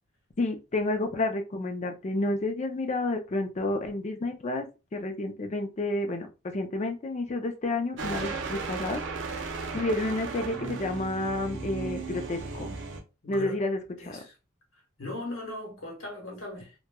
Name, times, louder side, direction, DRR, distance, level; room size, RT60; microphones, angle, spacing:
voice 1, 0.4-4.7 4.9-9.0 9.7-12.7 13.3-14.2, left 2 dB, 35° left, 0.4 m, -30 dB
sound 1, 8.0-13.0, right 4 dB, 70° right, 0.6 m, -35 dB
voice 2, 13.2-13.6 14.0-14.3 15.0-16.7, left 1 dB, 85° left, 1.1 m, -38 dB
2.8 x 2.1 x 2.2 m
head